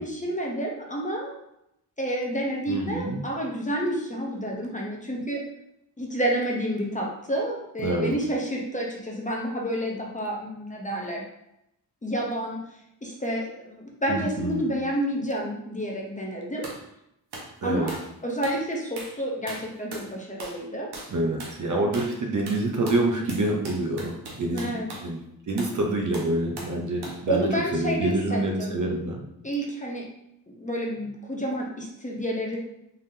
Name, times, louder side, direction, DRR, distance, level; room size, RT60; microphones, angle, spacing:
voice 1, 0.0-1.4 2.0-5.4 6.0-11.2 12.0-12.6 13.0-16.7 17.6-20.9 24.5-24.9 27.3-28.8 29.4-30.0 30.6-32.6, right 1 dB, 20° left, -2 dB, 0.7 m, -29 dB
voice 2, 2.7-3.2 7.8-8.1 14.1-14.7 17.6-17.9 21.1-24.7 25.0-25.2 25.5-29.2, right 2 dB, 50° right, 0 dB, 0.8 m, -27 dB
sound 1, 16.6-16.8 17.3-17.5 17.9-18.1 18.4-18.6 19.0-19.2 19.5-20.1 20.4-20.6 20.9-21.1 21.4-21.6 21.9-22.2 22.5-25.1 25.6-25.8 26.1-26.8 27.0-27.2, right 2 dB, 85° right, 1.1 m, -39 dB
3.9 x 3.5 x 2.7 m, 0.81 s
wide cardioid pair, 120°, 38 cm